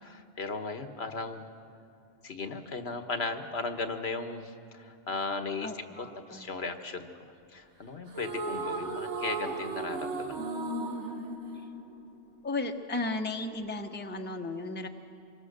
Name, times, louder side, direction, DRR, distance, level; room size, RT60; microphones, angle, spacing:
voice 1, 0.0-1.5 2.2-5.7 6.3-7.1 7.5-10.6, left 3 dB, 65° left, 8 dB, 1.4 m, -36 dB
voice 2, 5.6-6.5 12.4-14.9, left 2 dB, 10° left, 5 dB, 0.9 m, -35 dB
sound 1, 8.1-12.5, right 3 dB, 80° right, 1.8 m, -35 dB
25.5 x 22.5 x 6.6 m, 2.5 s
omnidirectional pair, 1.2 m